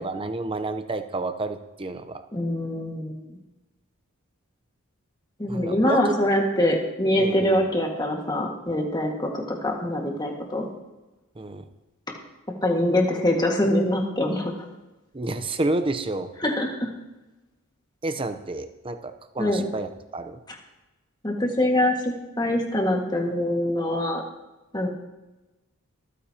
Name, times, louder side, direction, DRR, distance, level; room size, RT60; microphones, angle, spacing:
voice 1, 0.0-2.2 5.5-6.1 7.2-7.5 11.4-11.6 15.1-16.3 18.0-20.4, right 2 dB, 25° right, 9 dB, 0.8 m, -30 dB
voice 2, 2.3-3.2 5.4-10.7 12.6-14.5 16.4-16.9 19.4-19.6 21.2-24.2 24.7-24.9, left 1 dB, 20° left, 1 dB, 1.8 m, -24 dB
25.0 x 9.3 x 2.9 m, 1.1 s
head